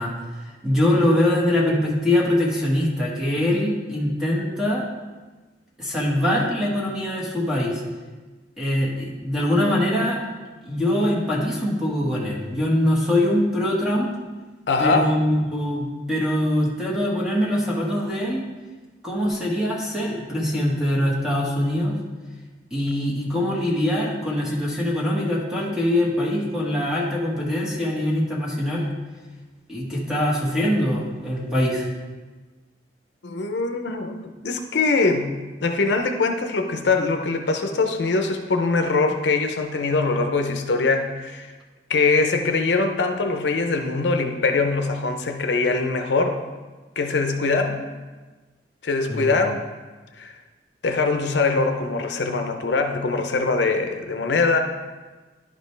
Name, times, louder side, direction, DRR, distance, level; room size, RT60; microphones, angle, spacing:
voice 1, 0.0-4.8 5.8-7.8 8.6-10.2 10.6-14.1 14.8-18.4 19.0-21.9 22.7-28.9 29.7-31.9 49.1-49.3, left 1 dB, 5° right, -4 dB, 1.5 m, -23 dB
voice 2, 14.7-15.1 33.2-34.2 34.4-41.5 41.9-46.4 47.0-47.8 48.8-49.6 50.2-50.3 50.8-54.6, left 3 dB, 70° left, 5 dB, 0.6 m, -22 dB
11.0 x 5.2 x 3.3 m, 1.3 s
head